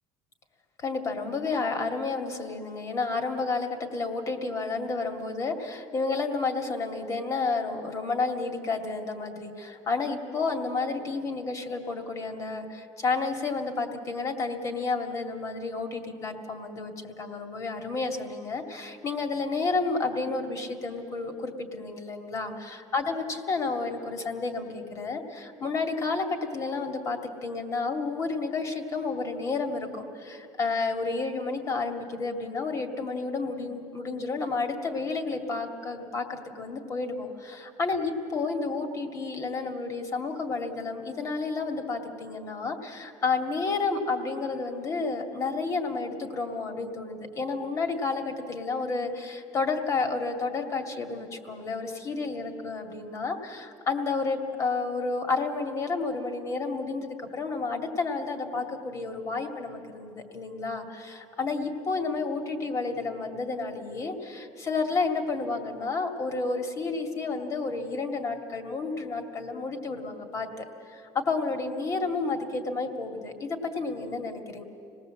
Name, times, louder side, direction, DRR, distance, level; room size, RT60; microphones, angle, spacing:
voice 1, 0.8-26.3 26.5-74.6, left 4 dB, 35° left, 5 dB, 2.2 m, -31 dB
26.0 x 19.0 x 7.6 m, 2.8 s
cardioid pair, 120°, 9 cm